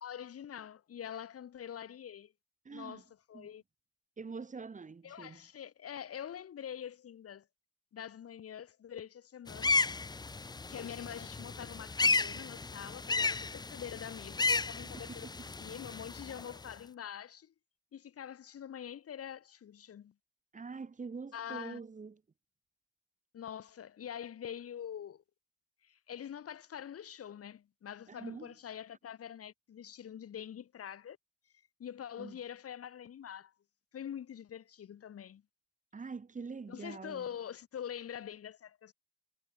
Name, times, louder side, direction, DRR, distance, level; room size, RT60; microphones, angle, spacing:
voice 1, 0.0-2.3 2.7-3.6 5.0-7.4 7.9-9.8 10.7-15.3 15.6-17.5 17.9-20.1 21.3-21.8 23.3-25.2 25.8-31.2 31.8-33.5 33.9-35.4 36.7-38.9, left 9 dB, 50° left, 0.6 m, -45 dB
voice 2, 2.6-3.0 3.3-3.5 4.2-5.4 14.9-15.2 20.5-22.2 28.1-28.5 32.2-32.3 35.9-37.3, right 4 dB, 25° right, 0.7 m, -44 dB
sound 1, 9.5-16.7, left 4 dB, 15° left, 0.3 m, -33 dB
wide cardioid pair, 115°, 31 cm